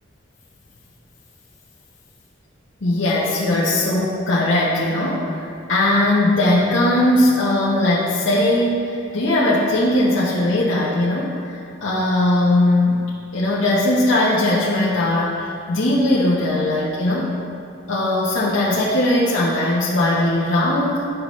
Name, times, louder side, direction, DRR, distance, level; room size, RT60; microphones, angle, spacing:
voice 1, 2.8-13.0 13.3-17.4 17.9-21.1, left 1 dB, 85° left, -7 dB, 0.9 m, -19 dB
9.2 x 5.5 x 3.1 m, 2.5 s
head